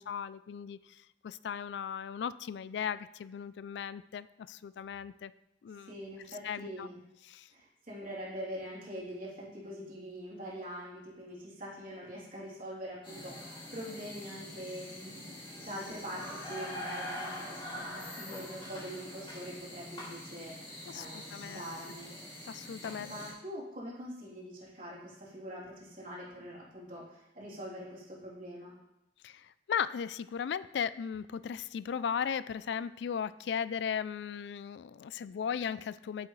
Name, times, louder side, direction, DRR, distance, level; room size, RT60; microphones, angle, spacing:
voice 1, 0.0-5.3 5.6-5.9 6.3-6.9 7.3-7.5 20.9-21.7 22.5-23.1 29.2-36.3, left 7 dB, 70° left, 16 dB, 0.3 m, -37 dB
voice 2, 5.9-7.0 7.5-22.2 23.0-28.8, equal, 50° right, -6 dB, 3.3 m, -44 dB
sound 1, 13.0-23.3, left 1 dB, 30° left, 2.5 m, -44 dB
8.5 x 7.9 x 3.2 m, 0.89 s
head